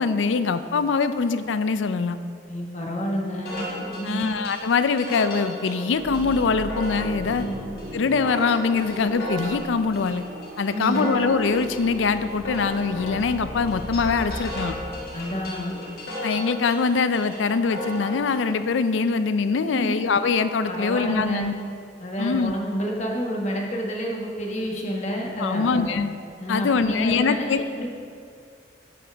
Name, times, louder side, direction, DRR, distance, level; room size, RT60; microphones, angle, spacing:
voice 1, 0.0-2.2 4.0-7.5 7.9-10.2 10.6-14.8 16.2-21.5 22.2-22.5 25.4-26.1 26.5-27.6, left 5 dB, 85° left, 11 dB, 0.4 m, -23 dB
voice 2, 2.5-4.3 7.4-7.6 10.6-11.0 15.1-15.7 19.7-19.9 20.7-21.5 22.0-25.8 26.4-27.5 27.8-28.0, equal, 35° left, -1 dB, 1.2 m, -29 dB
sound 1, 3.5-18.5, left 1 dB, 55° left, 2.1 m, -35 dB
sound 2, 5.9-15.6, right 1 dB, 60° right, 1.4 m, -37 dB
10.0 x 7.9 x 3.4 m, 2.4 s
head